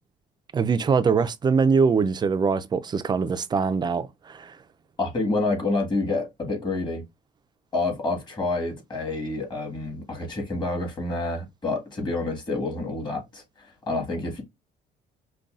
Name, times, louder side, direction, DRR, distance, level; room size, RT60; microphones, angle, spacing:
voice 1, 0.5-4.5, right 5 dB, 25° right, 0.4 m, -23 dB
voice 2, 5.0-7.0 7.7-14.4, left 2 dB, 25° left, 1.6 m, -28 dB
5.3 x 2.2 x 2.4 m
cardioid pair, 110°, 17 cm